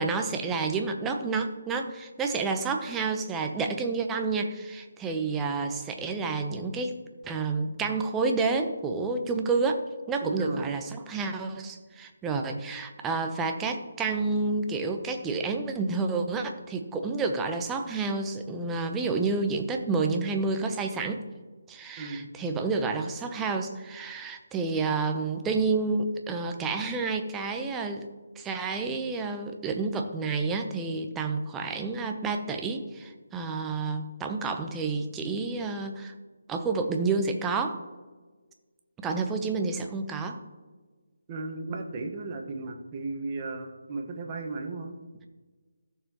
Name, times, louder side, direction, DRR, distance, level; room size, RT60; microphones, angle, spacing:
voice 1, 0.0-7.0 7.2-9.8 10.1-21.2 21.7-28.1 28.4-36.1 36.5-37.8 39.0-40.4, right 4 dB, 10° right, 4 dB, 0.8 m, -29 dB
voice 2, 10.2-10.7 22.0-22.3 41.3-45.0, right 3 dB, 25° right, 1 dB, 1.3 m, -35 dB
15.5 x 6.7 x 3.0 m, 1.3 s
figure-of-eight pair, 160°, 0 cm